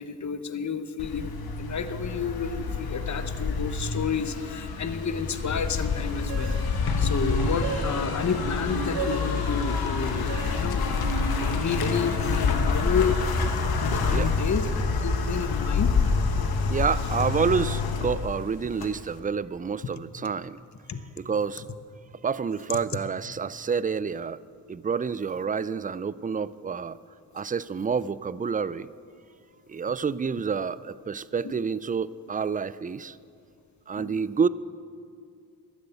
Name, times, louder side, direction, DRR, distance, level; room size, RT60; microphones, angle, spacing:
voice 1, 0.0-1.3 1.6-6.6 7.0-11.1 11.4-13.2 13.8-15.9 20.9-21.0 33.9-34.2, left 6 dB, 45° left, 10 dB, 1.0 m, -30 dB
sound 1, 1.0-19.2, left 4 dB, 65° left, 1.2 m, -27 dB
sound 2, 6.3-12.1, right 6 dB, 80° right, 0.8 m, -36 dB
voice 2, 16.7-20.6 21.2-21.7 22.2-24.4 24.7-27.0 27.3-28.9 29.7-33.2 33.9-34.5, right 6 dB, 20° right, 18 dB, 0.4 m, -28 dB
12.5 x 8.0 x 8.2 m, 2.3 s
supercardioid pair, 40°, 39 cm